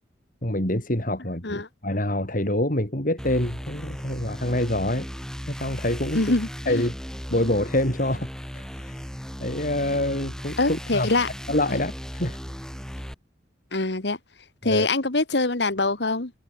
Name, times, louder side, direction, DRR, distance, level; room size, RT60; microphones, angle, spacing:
voice 1, 0.4-5.1 5.5-6.3 6.7-6.9 7.3-9.0 9.4-11.1 11.5-12.4 14.6-14.9, left 1 dB, 50° left, 5.9 m, -26 dB
sound 1, 3.2-13.1, equal, 5° left, 4.6 m, -36 dB
voice 2, 6.1-6.8 10.6-11.3 11.7-11.8 13.7-14.2 14.6-16.3, left 2 dB, 70° left, 1.8 m, -24 dB
head